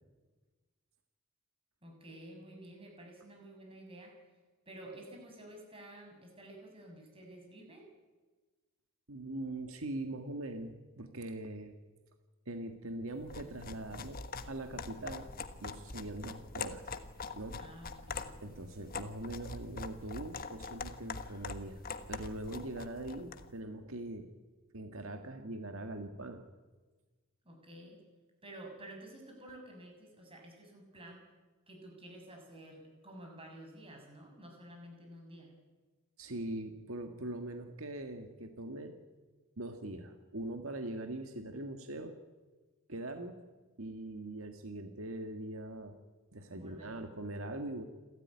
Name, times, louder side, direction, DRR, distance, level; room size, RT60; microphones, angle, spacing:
voice 1, 1.8-4.1 4.6-7.9 17.6-18.4 27.4-28.0 28.4-31.2 31.7-35.5 46.5-47.0, right 1 dB, 25° right, 2 dB, 6.7 m, -51 dB
voice 2, 9.1-11.7 12.5-15.3 15.6-16.9 17.3-17.6 18.4-21.8 22.1-24.3 24.7-26.4 36.2-39.0 39.6-42.2 42.9-43.4 43.8-45.9 46.3-47.8, right 1 dB, 75° right, 6 dB, 1.8 m, -42 dB
sound 1, 13.2-23.5, left 4 dB, 45° left, 1.4 m, -44 dB
28.0 x 14.0 x 9.7 m, 1.3 s
head